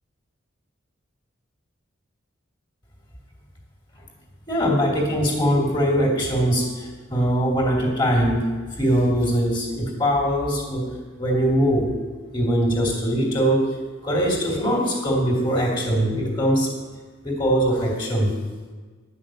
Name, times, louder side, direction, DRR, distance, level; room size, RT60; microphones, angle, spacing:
voice 1, 4.5-8.5 8.8-10.9 11.2-12.0 12.3-13.8 14.0-16.7 17.2-18.3, equal, 20° left, -2 dB, 2.6 m, -21 dB
11.0 x 6.2 x 8.9 m, 1.4 s
head